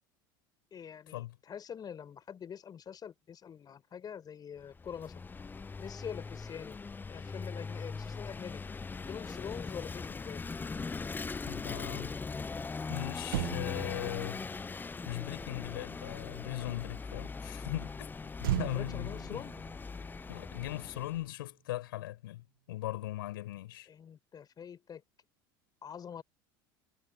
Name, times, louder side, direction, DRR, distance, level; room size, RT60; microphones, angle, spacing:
voice 1, 0.7-5.2 5.8-6.8 7.1-8.6 9.1-10.4 18.6-19.5 23.9-25.0 25.8-26.2, left 8 dB, 35° left, 4.9 m, -45 dB
Vehicle / Engine, 4.6-21.3, left 4 dB, 15° left, 0.6 m, -40 dB
voice 2, 11.4-12.2 12.9-14.4 15.0-19.4 20.3-23.9, left 16 dB, 80° left, 5.0 m, -39 dB
Motor vehicle (road), 13.2-16.8 18.4-21.0 21.3-21.5, right 15 dB, 75° right, 1.6 m, -39 dB
hypercardioid pair, 80°, 12 cm